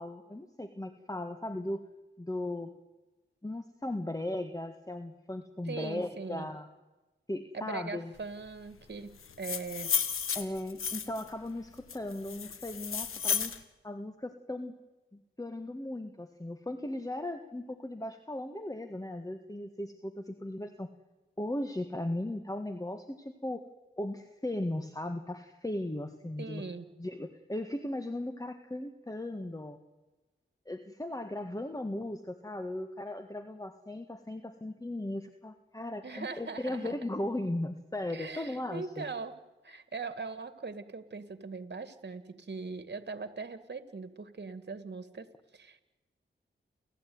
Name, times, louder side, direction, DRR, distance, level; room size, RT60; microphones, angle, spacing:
voice 1, 0.0-1.9 2.2-2.7 3.4-6.7 7.3-8.1 10.3-13.5 13.8-14.7 15.1-20.9 21.4-23.6 24.0-26.6 27.0-29.8 30.6-39.1, left 1 dB, 15° left, 8 dB, 1.7 m, -37 dB
voice 2, 5.7-6.5 7.5-9.9 26.4-26.9 36.0-37.0 38.1-39.4 39.6-45.8, right 4 dB, 55° right, 11 dB, 2.1 m, -41 dB
sound 1, 9.2-11.3 11.9-13.6, left 6 dB, 85° left, 1.4 m, -33 dB
29.5 x 14.0 x 9.6 m, 1.1 s
cardioid pair, 45°, 21 cm